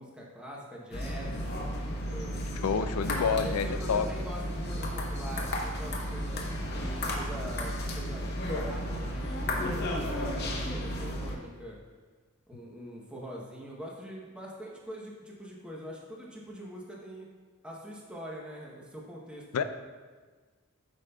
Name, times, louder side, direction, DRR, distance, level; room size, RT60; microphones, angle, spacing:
voice 1, 0.0-1.4 2.1-2.4 2.8-2.9 3.1-6.5 7.0-11.8 12.5-17.3 17.6-19.6, equal, 5° right, -4 dB, 0.8 m, -43 dB
sound 1, 0.9-11.4, equal, 50° left, 0.8 m, -33 dB
voice 2, 2.6-4.1 19.5-19.6, left 6 dB, 85° left, 10 dB, 0.4 m, -28 dB
10.5 x 5.1 x 2.3 m, 1.4 s
head